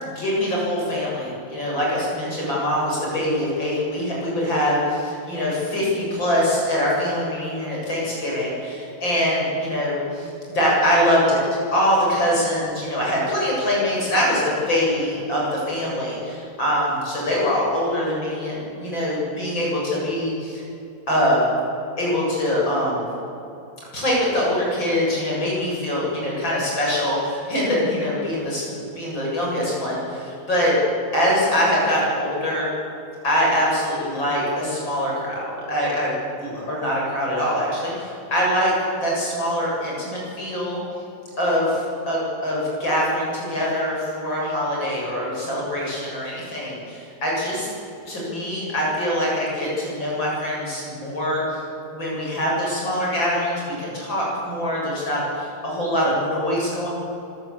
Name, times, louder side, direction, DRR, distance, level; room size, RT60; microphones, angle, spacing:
voice 1, 0.1-11.4 11.7-20.6 21.1-21.4 22.0-23.0 23.9-30.8 31.1-32.7 33.2-36.1 36.4-40.8 41.4-47.7 48.1-51.6 51.9-56.9, equal, 30° left, -5 dB, 8.3 m, -23 dB
25.5 x 15.5 x 8.6 m, 2.8 s
omnidirectional pair, 4.1 m